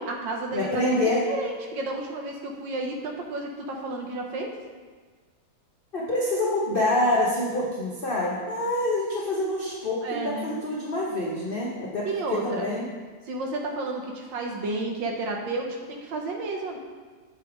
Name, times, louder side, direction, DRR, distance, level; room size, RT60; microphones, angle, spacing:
voice 1, 0.0-0.8 1.3-4.5 10.0-10.5 12.0-12.7 13.3-16.8, right 2 dB, 70° right, 1 dB, 1.5 m, -31 dB
voice 2, 0.5-1.2 5.9-12.8, left 1 dB, 70° left, -4 dB, 0.5 m, -26 dB
7.6 x 3.3 x 4.7 m, 1.4 s
omnidirectional pair, 2.1 m